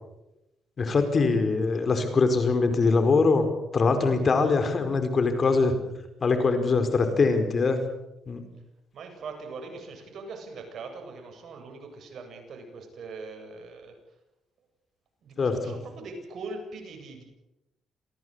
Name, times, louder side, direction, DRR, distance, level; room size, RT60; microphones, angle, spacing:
voice 1, 0.8-3.5 3.7-5.7 6.2-7.8 8.3-8.4 15.4-15.7, left 4 dB, 40° left, 8 dB, 4.9 m, -23 dB
voice 2, 8.9-13.9 15.2-17.2, right 3 dB, 60° right, 4 dB, 7.9 m, -41 dB
27.5 x 18.0 x 8.3 m, 0.94 s
cardioid pair, 90°, 0 cm